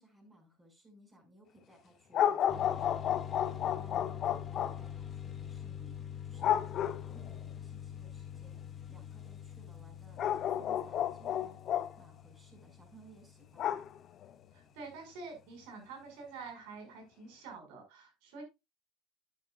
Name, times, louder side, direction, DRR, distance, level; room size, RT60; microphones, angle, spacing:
voice 1, 0.0-13.9, right 1 dB, 15° right, 3 dB, 5.8 m, -60 dB
sound 1, 2.1-4.8 6.4-7.3 10.2-11.9 13.6-14.3, left 10 dB, 45° left, 0.8 m, -31 dB
sound 2, 2.5-14.9, left 9 dB, 30° left, 1.9 m, -45 dB
voice 2, 14.5-18.4, right 4 dB, 80° right, 4 dB, 5.5 m, -47 dB
10.5 x 10.0 x 2.4 m, 0.23 s
supercardioid pair, 120°, 0 cm